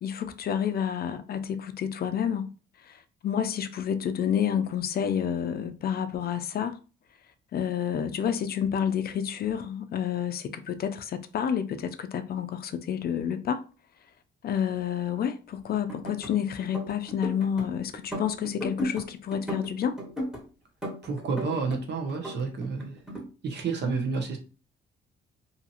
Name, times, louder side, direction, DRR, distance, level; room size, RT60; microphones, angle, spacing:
voice 1, 0.0-2.5 2.8-6.8 7.5-13.6 14.4-20.0, left 8 dB, 50° left, 0.4 m, -29 dB
sound 1, 15.7-16.3 16.6-17.7 17.9-19.0 19.3-20.4 20.8-21.8 22.1-23.2, equal, 5° right, 1.4 m, -35 dB
voice 2, 21.0-23.0 23.4-24.4, right 4 dB, 60° right, 0.9 m, -30 dB
2.7 x 2.5 x 2.8 m
cardioid pair, 90°, 20 cm